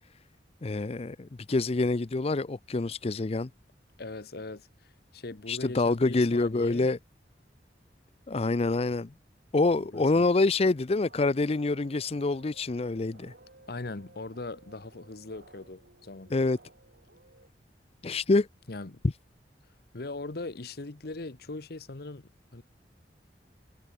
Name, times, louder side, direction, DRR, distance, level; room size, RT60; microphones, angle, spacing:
voice 1, 0.6-3.5 5.5-7.0 8.3-9.1 9.5-13.3 16.3-16.6 18.0-18.5, left 3 dB, 35° left, 0.5 m, -26 dB
voice 2, 4.0-6.9 9.8-10.3 13.7-16.3 18.7-19.0 19.9-22.6, left 2 dB, 60° left, 1.1 m, -40 dB
sound 1, 10.9-17.5, right 2 dB, 65° right, 4.1 m, -57 dB
head